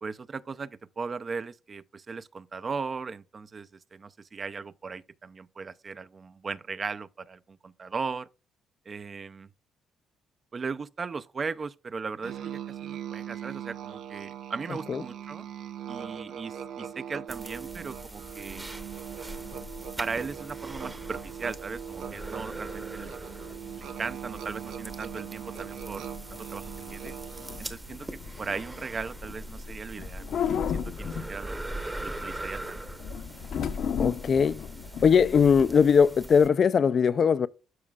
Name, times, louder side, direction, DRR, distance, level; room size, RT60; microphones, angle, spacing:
voice 1, 0.0-8.3 8.9-9.5 10.5-15.5 15.9-18.7 20.0-23.3 23.8-26.1 26.5-27.2 27.6-31.6 32.0-32.8, right 5 dB, 40° right, 0.4 m, -37 dB
Musical instrument, 12.2-27.8, right 9 dB, 80° right, 0.7 m, -40 dB
sound 1, 17.3-36.5, right 1 dB, 15° right, 0.9 m, -42 dB
sound 2, 19.2-35.6, left 7 dB, 70° left, 0.8 m, -37 dB
voice 2, 34.0-34.7 35.0-37.5, left 6 dB, 50° left, 0.3 m, -20 dB
12.5 x 4.9 x 2.3 m
cardioid pair, 90°, 0 cm